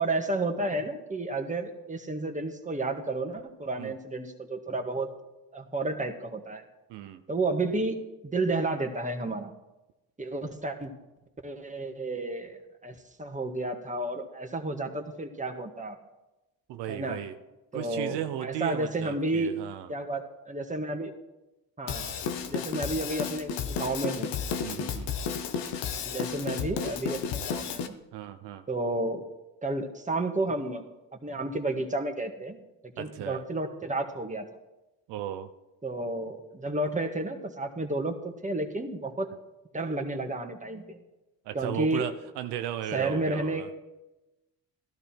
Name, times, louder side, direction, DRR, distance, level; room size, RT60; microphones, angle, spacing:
voice 1, 0.0-5.1 5.5-6.6 7.3-8.0 8.2-9.5 10.2-10.9 11.4-16.0 16.9-17.2 17.7-19.6 19.9-21.1 21.8-22.2 22.5-24.3 26.0-28.0 28.7-29.2 29.6-30.8 31.2-32.6 33.0-34.5 35.8-39.3 39.7-41.0 41.5-42.1 42.9-43.7, right 2 dB, 20° right, 4 dB, 1.9 m, -31 dB
voice 2, 6.9-7.2 16.7-17.3 17.7-19.9 24.6-25.1 28.1-28.6 33.0-33.4 35.1-35.5 41.4-43.7, right 11 dB, 85° right, 8 dB, 0.8 m, -35 dB
Drum kit / Drum, 21.9-27.9, left 6 dB, 85° left, 1.1 m, -32 dB
13.5 x 12.5 x 4.5 m, 0.99 s
supercardioid pair, 70°, 40 cm